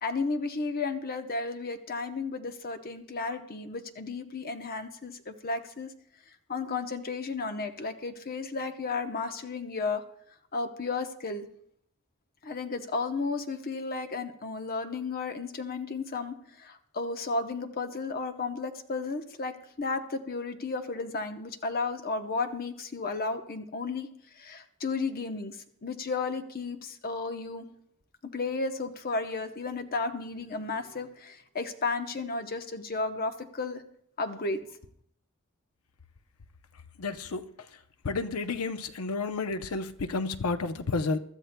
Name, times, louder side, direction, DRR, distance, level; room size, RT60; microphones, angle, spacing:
voice 1, 0.0-5.9 6.5-10.0 10.5-11.5 12.4-24.1 24.4-27.7 28.3-33.8 34.2-34.7, left 3 dB, 45° left, 0.9 m, -33 dB
voice 2, 37.0-37.5 38.0-41.2, left 3 dB, 75° left, 0.7 m, -31 dB
23.5 x 12.5 x 2.2 m
head